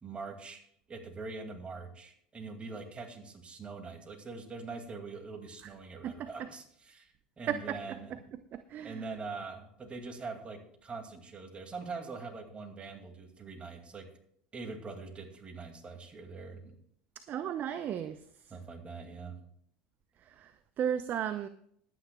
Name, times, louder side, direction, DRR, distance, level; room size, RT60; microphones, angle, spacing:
voice 1, 0.0-8.1 8.8-14.1 14.5-16.8 18.5-19.5, right 4 dB, 25° right, 4 dB, 2.4 m, -43 dB
voice 2, 6.0-6.5 7.5-8.2 8.5-9.0 17.3-18.2 20.2-21.5, right 9 dB, 45° right, 11 dB, 0.6 m, -35 dB
21.0 x 9.2 x 2.3 m, 0.67 s
hypercardioid pair, 80°, 4 cm